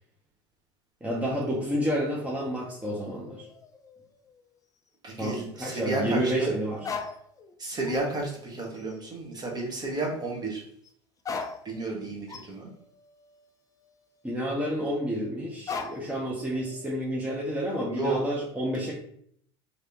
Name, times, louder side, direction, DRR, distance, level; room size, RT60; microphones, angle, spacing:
voice 1, 1.0-3.5 5.2-6.8 14.2-18.9, equal, 10° right, -4 dB, 0.8 m, -30 dB
sound 1, 2.6-4.6 4.9-5.0 6.8-7.5 7.8-8.3 8.7-9.1 10.8-10.9 11.2-14.5 15.7-16.2 16.5-17.3, left 5 dB, 25° left, 0.4 m, -40 dB
voice 2, 5.0-6.6 7.6-10.6 11.6-12.7 17.9-18.2, right 2 dB, 25° right, -1 dB, 1.2 m, -32 dB
3.2 x 2.7 x 2.9 m, 0.64 s
hypercardioid pair, 80°, 15 cm